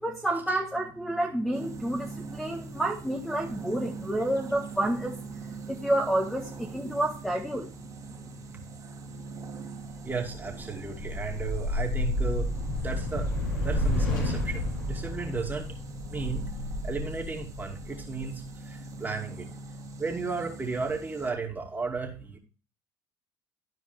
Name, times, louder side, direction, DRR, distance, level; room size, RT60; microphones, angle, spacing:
voice 1, 0.0-5.4 5.7-7.7, right 1 dB, 5° left, 1 dB, 1.5 m, -29 dB
sound 1, 1.5-21.3, right 3 dB, 35° right, 2.2 m, -43 dB
voice 2, 10.0-13.3 13.6-15.8 16.1-16.4 16.8-19.5 20.0-22.4, right 4 dB, 20° right, 1 dB, 2.4 m, -34 dB
sound 2, 10.2-18.5, left 1 dB, 85° left, 4.9 m, -31 dB
13.0 x 4.6 x 3.4 m, 0.34 s
hypercardioid pair, 75°, 10 cm